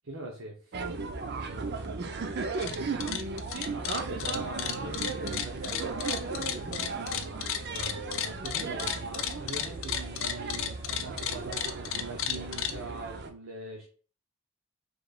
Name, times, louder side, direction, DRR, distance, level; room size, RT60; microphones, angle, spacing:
voice 1, 0.0-0.8 1.3-2.7 3.7-13.8, right 2 dB, 70° right, -1 dB, 0.8 m, -42 dB
sound 1, 0.7-13.3, right 4 dB, 50° right, 0.5 m, -36 dB
sound 2, 2.4-2.8 3.0-12.7, left 9 dB, 65° left, 0.5 m, -33 dB
4.9 x 3.2 x 2.4 m, 0.41 s
head